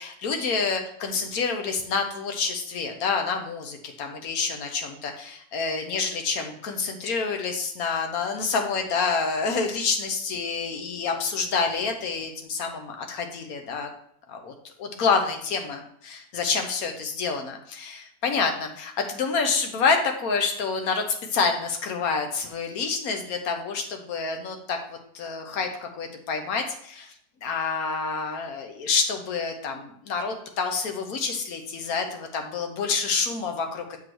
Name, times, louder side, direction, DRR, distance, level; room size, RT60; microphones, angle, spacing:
voice 1, 0.0-13.9 14.3-14.5 14.8-21.0 21.3-27.1 27.4-33.8, left 5 dB, 70° left, 4 dB, 1.4 m, -28 dB
7.1 x 3.8 x 4.5 m, 0.66 s
omnidirectional pair, 1.6 m